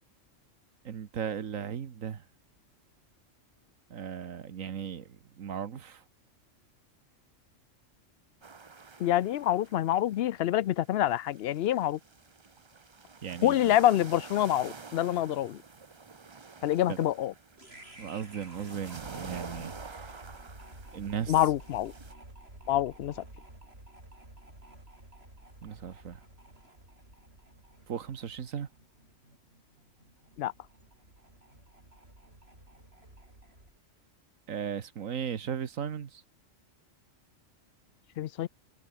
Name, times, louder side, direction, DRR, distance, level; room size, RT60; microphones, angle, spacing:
voice 1, 0.9-2.2 3.9-6.0 13.2-13.8 16.8-17.1 18.0-20.2 20.9-21.4 25.6-26.2 27.9-28.7 34.5-36.2, right 7 dB, 90° right, 1.6 m, -37 dB
sound 1, 8.4-22.1, right 4 dB, 25° right, 0.7 m, -49 dB
voice 2, 9.0-12.0 13.4-15.6 16.6-17.3 21.3-21.9 22.7-23.1 30.4-30.5 38.2-38.5, left 12 dB, 65° left, 0.7 m, -26 dB
sound 2, 17.6-33.8, right 1 dB, 50° right, 7.0 m, -52 dB
omnidirectional pair, 1.4 m